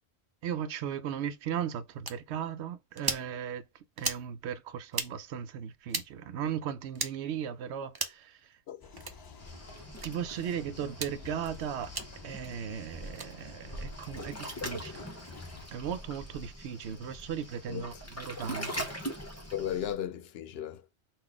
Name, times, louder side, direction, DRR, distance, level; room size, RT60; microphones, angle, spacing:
voice 1, 0.4-3.6 4.0-8.4 10.0-12.0 12.2-15.0 15.7-18.9, right 8 dB, 85° right, 0.9 m, -37 dB
sound 1, 2.0-2.2 3.0-3.3 4.0-4.2 4.9-5.1 5.9-6.1 6.9-7.1 7.9-8.2 9.0-9.2 10.0-10.1 10.9-11.1 11.9-12.1 13.1-13.3, right 3 dB, 30° right, 0.5 m, -34 dB
sound 2, 8.8-15.7, left 3 dB, 30° left, 0.4 m, -50 dB
voice 2, 9.2-9.5 17.7-17.8 19.5-20.9, left 10 dB, 70° left, 0.8 m, -36 dB
Waves surf, 9.4-19.9, equal, 15° left, 0.8 m, -42 dB
3.8 x 2.5 x 4.7 m
omnidirectional pair, 1.1 m